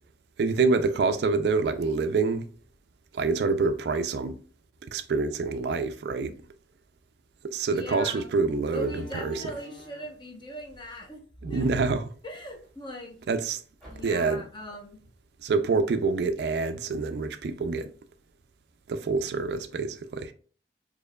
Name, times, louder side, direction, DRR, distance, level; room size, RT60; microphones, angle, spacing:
voice 1, 0.4-2.5 3.1-4.3 4.9-6.3 7.4-9.3 11.4-12.0 13.3-13.6 14.0-14.4 15.4-17.9 18.9-20.3, right 4 dB, 60° right, 0.3 m, -26 dB
Slam, 7.6-7.8 8.7-10.3 11.3-12.7 13.1-13.2 13.8-14.4, right 1 dB, ahead, 1.5 m, -44 dB
voice 2, 7.7-8.3 8.7-11.2 11.5-11.7 12.2-13.2 13.9-15.0, equal, 25° left, 0.8 m, -40 dB
4.4 x 2.8 x 2.2 m
head